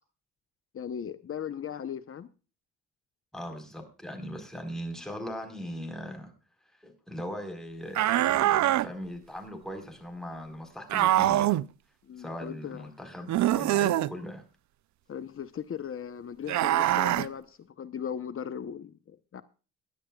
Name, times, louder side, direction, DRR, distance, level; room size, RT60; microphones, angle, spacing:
voice 1, 0.7-2.3 12.1-12.9 15.1-19.4, left 8 dB, 45° left, 0.9 m, -38 dB
voice 2, 3.3-6.3 6.8-11.5 12.2-14.4, equal, ahead, 4.4 m, -39 dB
sound 1, 7.9-8.9 10.9-11.6 13.3-14.1 16.5-17.3, right 14 dB, 70° right, 0.6 m, -24 dB
22.5 x 10.5 x 2.4 m
cardioid pair, 90°, 30 cm